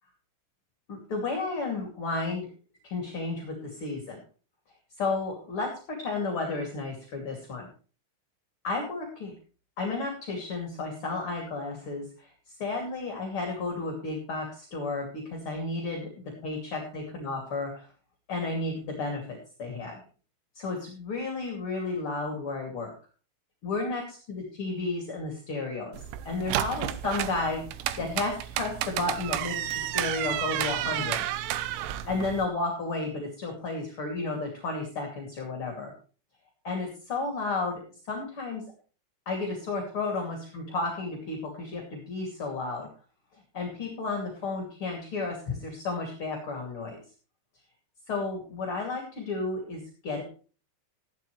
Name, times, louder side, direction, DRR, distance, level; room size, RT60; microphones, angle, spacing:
voice 1, 0.9-2.5 2.8-4.2 5.0-7.7 8.6-9.3 9.8-12.3 12.6-17.9 18.3-20.0 20.5-22.9 23.6-27.6 28.0-31.3 32.1-35.9 36.6-37.8 38.1-38.6 39.3-42.9 43.5-47.0 48.1-50.2, left 3 dB, 35° left, 1 dB, 2.7 m, -32 dB
sound 1, 25.9-32.5, right 13 dB, 85° right, 3.2 m, -31 dB
14.5 x 11.5 x 3.3 m, 0.37 s
omnidirectional pair, 5.3 m